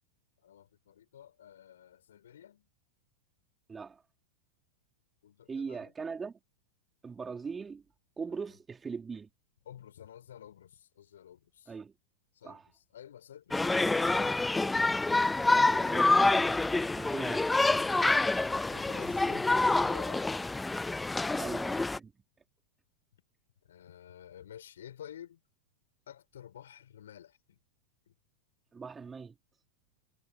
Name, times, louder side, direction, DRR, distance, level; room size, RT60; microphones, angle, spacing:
voice 1, 0.4-2.7 5.2-5.9 8.5-8.6 9.6-11.8 12.3-14.4 18.7-20.6 21.3-21.6 23.6-25.4 26.1-27.6 28.1-28.2, left 10 dB, 65° left, 6.2 m, -51 dB
voice 2, 3.7-4.0 5.5-6.4 7.0-7.8 8.2-9.3 11.7-11.9 12.4-12.6 15.5-17.5 21.3-22.1 28.7-29.4, right 5 dB, 15° right, 4.4 m, -40 dB
sound 1, 13.5-22.0, left 2 dB, 10° left, 0.3 m, -27 dB
figure-of-eight pair, 90°, 0 cm